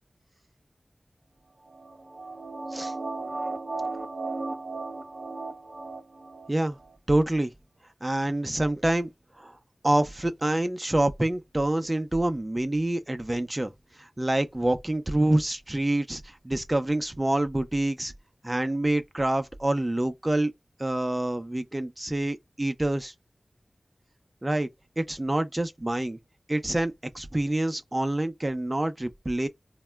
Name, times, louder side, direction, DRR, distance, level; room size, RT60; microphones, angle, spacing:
sound 1, 1.7-6.5 6.8-6.9, right 3 dB, 70° right, 0.8 m, -35 dB
voice 1, 7.1-7.5 8.0-9.1 9.4-9.5 9.8-13.7 14.0-18.1 18.4-20.5 20.8-23.1 24.4-24.7 25.0-26.2 26.5-29.5, right 1 dB, 30° right, 0.5 m, -26 dB
2.2 x 2.0 x 3.4 m
cardioid pair, 40°, 0 cm